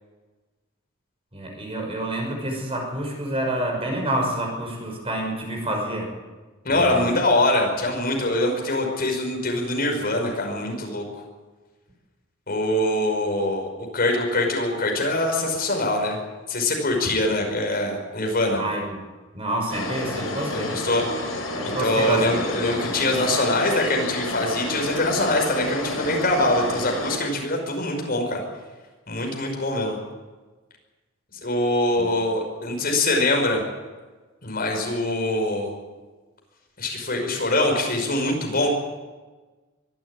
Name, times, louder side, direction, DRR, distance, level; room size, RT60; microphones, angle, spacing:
voice 1, 1.3-6.1 6.7-7.1 18.6-19.0 19.3-20.8 21.6-22.5 32.0-32.1, right 1 dB, 30° right, 1 dB, 5.9 m, -28 dB
voice 2, 6.6-11.0 12.5-16.2 16.5-18.6 20.5-21.1 21.6-28.4 29.1-30.0 31.4-33.6 34.4-35.7 36.8-38.7, left 1 dB, 50° left, 2 dB, 5.4 m, -23 dB
sound 1, 19.7-27.2, left 2 dB, 85° left, 7.3 m, -30 dB
24.0 x 12.5 x 9.8 m, 1.3 s
head